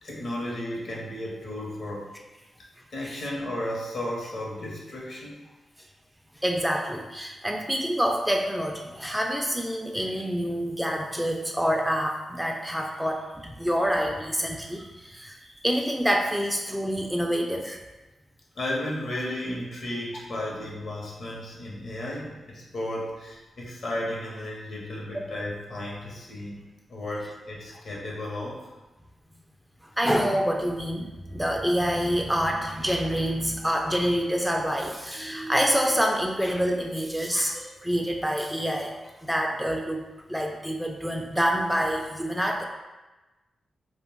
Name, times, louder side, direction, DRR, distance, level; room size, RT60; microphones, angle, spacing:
voice 1, 0.0-2.1 2.9-5.4 18.5-26.6 26.9-28.6, left 1 dB, 65° left, -3 dB, 0.8 m, -34 dB
voice 2, 6.4-17.8 30.0-40.0 40.3-42.6, equal, 5° right, 1 dB, 0.3 m, -27 dB
2.4 x 2.2 x 3.4 m, 1.1 s
cardioid pair, 60°, 0 cm